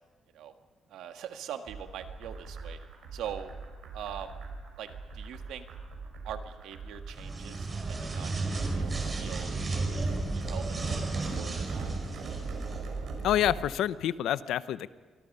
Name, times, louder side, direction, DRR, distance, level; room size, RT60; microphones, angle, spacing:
voice 1, 0.9-2.8 3.1-3.6 3.9-4.3 4.8-4.9 5.1-5.7 6.2-8.4 8.7-8.9 9.2-9.5 9.9-10.1 10.3-11.9, right 9 dB, 85° right, 6 dB, 1.8 m, -42 dB
sound 1, 1.7-13.6, right 4 dB, 70° right, 6.1 m, -40 dB
sound 2, 7.1-12.8, right 3 dB, 35° right, 4.9 m, -33 dB
voice 2, 13.2-14.9, left 11 dB, 80° left, 15 dB, 0.7 m, -27 dB
27.5 x 23.5 x 5.6 m, 1.4 s
cardioid pair, 90°, 0 cm